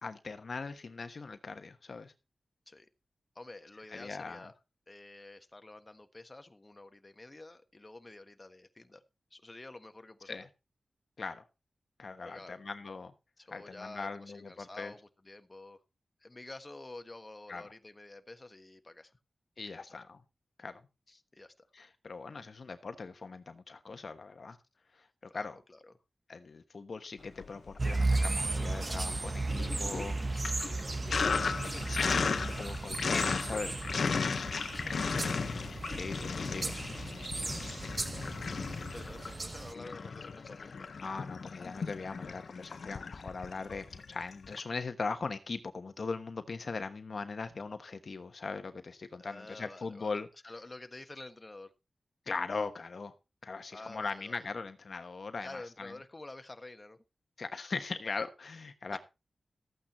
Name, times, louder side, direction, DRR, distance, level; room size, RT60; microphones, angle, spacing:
voice 1, 0.0-2.1 3.9-4.4 10.3-10.4 11.2-11.4 12.0-13.1 13.5-14.9 17.5-17.6 19.6-20.2 20.6-20.8 21.7-24.6 24.9-25.6 26.3-30.2 31.0-33.9 35.9-38.2 41.0-50.3 52.3-53.1 53.4-55.9 57.4-59.0, left 4 dB, 65° left, 1.2 m, -40 dB
voice 2, 3.3-4.5 4.9-9.0 9.3-10.5 12.2-12.6 13.4-15.8 16.2-19.1 19.6-20.0 21.1-21.7 25.3-25.9 34.7-35.5 38.3-40.9 49.2-50.1 50.4-51.7 53.7-54.4 55.4-57.0 58.9-59.0, left 2 dB, 30° left, 1.4 m, -49 dB
Sink (filling or washing), 27.3-28.2 28.5-44.6, left 5 dB, 80° left, 1.0 m, -36 dB
sound 1, 27.8-39.7, right 2 dB, 35° right, 1.0 m, -35 dB
14.0 x 8.9 x 4.3 m
wide cardioid pair, 85°, 0 cm